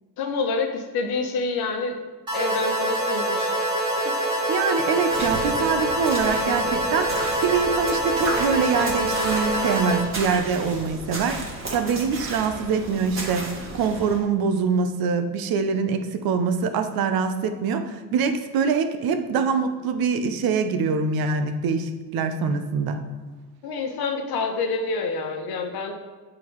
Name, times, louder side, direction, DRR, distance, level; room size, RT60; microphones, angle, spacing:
voice 1, 0.2-2.0 2.3-3.6 4.0-4.1 23.6-25.9, left 4 dB, 75° left, 4 dB, 1.1 m, -27 dB
sound 1, 2.3-10.0, right 1 dB, 10° right, 2.3 m, -25 dB
voice 2, 4.5-11.4 11.7-23.0, right 5 dB, 70° right, 8 dB, 0.8 m, -24 dB
sound 2, 5.1-14.2, right 2 dB, 35° right, 1.6 m, -34 dB
8.6 x 3.8 x 4.6 m, 1.3 s
cardioid pair, 130°, 37 cm